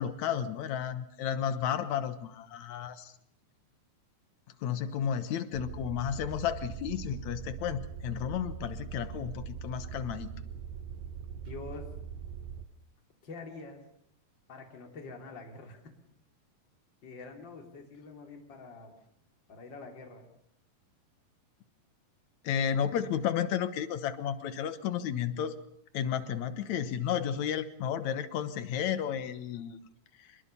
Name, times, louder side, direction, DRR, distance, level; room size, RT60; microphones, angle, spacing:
voice 1, 0.0-3.1 4.6-10.3 22.4-25.6 25.9-29.8, left 9 dB, 65° left, 11 dB, 2.1 m, -32 dB
sound 1, 5.5-12.7, right 7 dB, 75° right, 2.8 m, -42 dB
voice 2, 11.5-11.9 13.2-13.8 14.5-15.9 17.0-18.9 19.5-20.3, left 4 dB, 30° left, 2 dB, 3.6 m, -46 dB
24.0 x 21.5 x 6.9 m, 0.73 s
omnidirectional pair, 4.1 m